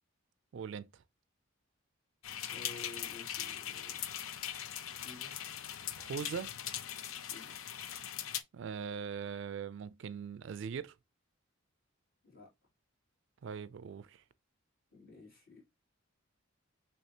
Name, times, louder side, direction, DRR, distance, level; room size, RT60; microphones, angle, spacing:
voice 1, 0.5-0.9 6.0-6.5 8.5-10.9 13.4-14.2, right 6 dB, 60° right, 0.3 m, -41 dB
sound 1, 2.2-8.4, left 10 dB, 75° left, 0.5 m, -41 dB
voice 2, 2.5-4.0 4.9-5.3 7.3-7.6 12.2-12.5 14.9-15.7, left 2 dB, 45° left, 2.8 m, -52 dB
6.4 x 2.8 x 2.8 m
head